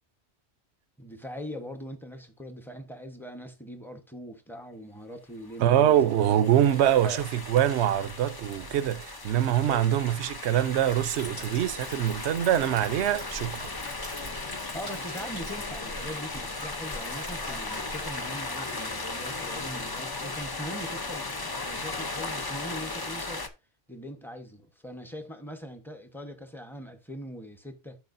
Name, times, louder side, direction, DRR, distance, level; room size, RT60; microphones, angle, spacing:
voice 1, 1.0-6.3 6.8-7.3 9.6-9.9 14.7-23.5 23.9-28.0, equal, ahead, 1.0 m, -41 dB
sound 1, 5.5-23.5, left 3 dB, 25° left, 0.6 m, -37 dB
voice 2, 5.6-13.7, right 11 dB, 80° right, 0.9 m, -24 dB
Liquid, 10.8-23.3, equal, 90° left, 3.5 m, -46 dB
12.5 x 4.8 x 2.6 m
omnidirectional pair, 1.1 m